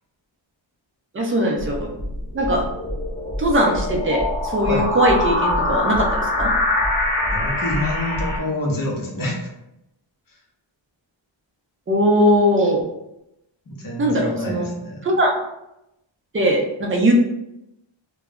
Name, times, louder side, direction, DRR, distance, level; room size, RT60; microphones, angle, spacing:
voice 1, 1.1-1.9 2.3-2.7 3.4-6.5 11.9-12.8 14.0-14.7 15.0-15.3 16.3-17.1, equal, 25° right, 1 dB, 0.5 m, -20 dB
sound 1, 1.6-8.4, left 1 dB, 20° left, 0.9 m, -23 dB
voice 2, 7.3-9.5 13.7-15.1, left 1 dB, 45° left, -1 dB, 0.7 m, -27 dB
2.3 x 2.0 x 3.4 m, 0.87 s
wide cardioid pair, 110°, 47 cm